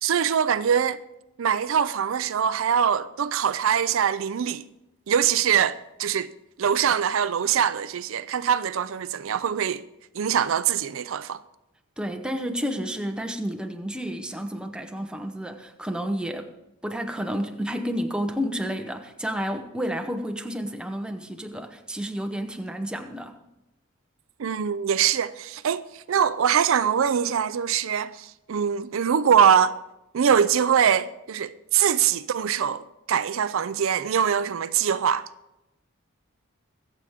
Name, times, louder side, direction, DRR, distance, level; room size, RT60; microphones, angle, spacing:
voice 1, 0.0-1.0 1.4-4.6 5.1-6.3 6.6-9.8 10.1-11.4 24.4-29.7 30.1-35.3, right 8 dB, 70° right, 0.4 m, -23 dB
voice 2, 12.0-16.5 16.8-23.4, equal, 5° right, 0.8 m, -31 dB
23.5 x 7.9 x 3.6 m
head